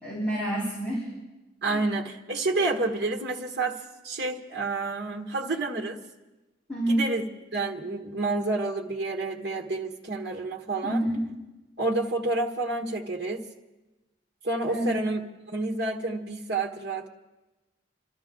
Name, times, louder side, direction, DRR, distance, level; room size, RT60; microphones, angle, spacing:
voice 1, 0.0-1.1 1.7-1.8 6.7-7.1 10.8-11.2 14.7-15.0, right 1 dB, 10° left, -8 dB, 3.6 m, -28 dB
voice 2, 1.6-3.8 4.0-6.0 6.9-7.2 7.5-11.1 11.8-13.4 14.4-15.2 15.5-17.1, right 2 dB, 60° right, 0 dB, 1.4 m, -29 dB
28.5 x 12.5 x 3.8 m, 1.1 s
head